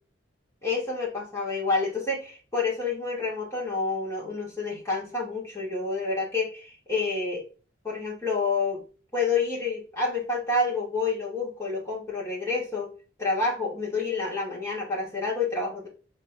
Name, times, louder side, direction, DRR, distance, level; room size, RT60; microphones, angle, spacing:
voice 1, 0.6-7.4 7.8-8.8 9.1-12.9 13.2-15.9, left 3 dB, 15° left, -5 dB, 2.0 m, -28 dB
5.0 x 3.4 x 2.3 m, 0.36 s
head